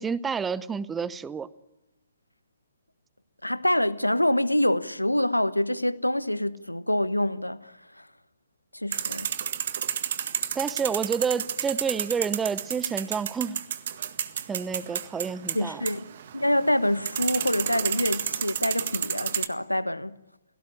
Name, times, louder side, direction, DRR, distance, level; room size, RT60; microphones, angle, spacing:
voice 1, 0.0-1.5 10.5-13.6 14.5-15.8, right 6 dB, 10° right, 0.9 m, -29 dB
voice 2, 3.4-8.1 8.7-9.3 15.5-20.2, left 1 dB, 90° left, 1.3 m, -26 dB
sound 1, 8.9-19.5, right 9 dB, 50° right, 1.8 m, -31 dB
29.0 x 18.0 x 9.9 m
figure-of-eight pair, 125°, 0 cm